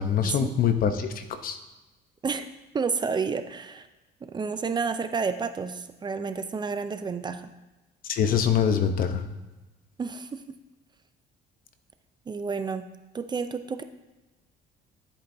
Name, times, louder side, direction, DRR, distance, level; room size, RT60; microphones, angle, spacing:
voice 1, 0.0-1.6 8.1-9.2, left 8 dB, 60° left, 9 dB, 0.8 m, -24 dB
voice 2, 2.7-3.9 4.2-7.5 10.0-10.4 12.3-12.9 13.1-13.8, right 5 dB, 25° right, 10 dB, 0.5 m, -30 dB
10.5 x 8.4 x 2.7 m, 1.1 s
cardioid pair, 110°, 17 cm